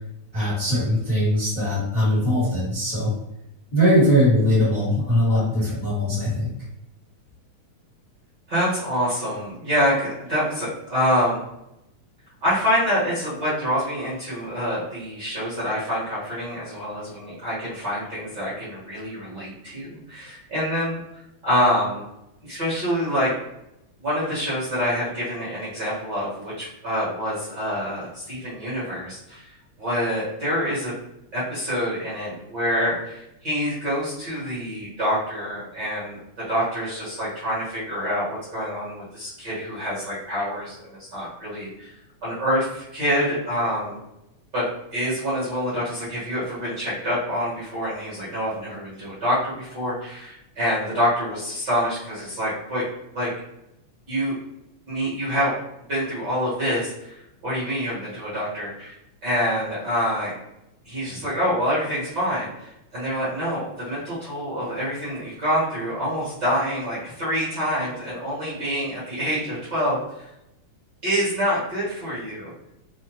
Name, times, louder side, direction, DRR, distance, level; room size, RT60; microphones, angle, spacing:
voice 1, 0.3-3.1 3.7-6.5, equal, 45° left, -9 dB, 1.1 m, -21 dB
voice 2, 8.5-11.4 12.4-21.0 21.4-22.0 22.4-23.3 24.0-30.9 31.3-36.2 36.5-44.0 44.5-52.8 53.1-53.3 54.1-54.4 54.9-55.5 55.9-58.9 59.2-60.3 60.8-70.3 71.0-72.5, equal, 45° right, -9 dB, 1.5 m, -26 dB
5.5 x 2.1 x 3.0 m, 0.84 s
omnidirectional pair, 3.5 m